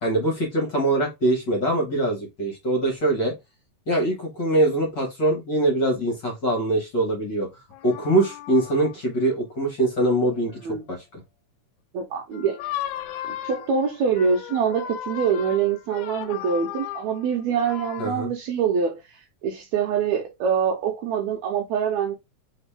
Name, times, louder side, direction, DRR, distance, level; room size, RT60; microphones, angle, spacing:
voice 1, 0.0-3.3 3.9-7.5 7.8-11.2 18.0-18.3, right 1 dB, 45° left, 1.6 m, -23 dB
sound 1, 7.7-9.0 10.1-10.4 12.3-18.1, left 11 dB, 80° left, 2.1 m, -36 dB
voice 2, 10.6-11.0 11.9-12.6 13.2-22.2, right 6 dB, 80° right, 1.8 m, -25 dB
4.0 x 3.9 x 3.4 m
omnidirectional pair, 3.5 m